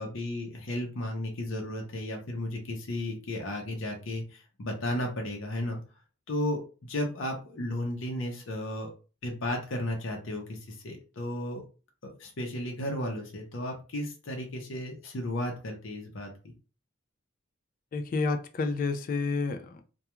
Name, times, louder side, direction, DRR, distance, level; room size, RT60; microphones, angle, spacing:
voice 1, 0.0-5.8 6.3-8.9 9.2-10.6 10.8-11.6 12.0-16.3, left 1 dB, 65° left, 2 dB, 0.7 m, -34 dB
voice 2, 17.9-19.8, left 3 dB, 40° left, 7 dB, 0.3 m, -30 dB
2.2 x 2.2 x 2.9 m, 0.34 s
head